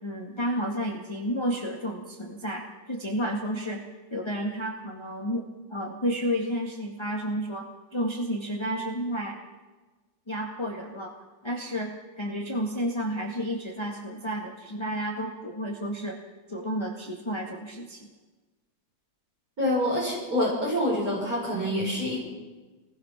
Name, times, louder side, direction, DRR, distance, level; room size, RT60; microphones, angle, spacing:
voice 1, 0.0-3.8 4.1-9.4 10.3-11.1 11.4-16.2 16.5-18.1, equal, 15° left, -1 dB, 1.9 m, -31 dB
voice 2, 19.6-22.3, left 1 dB, 50° right, -5 dB, 6.7 m, -26 dB
27.5 x 20.5 x 6.0 m, 1.3 s
omnidirectional pair, 2.0 m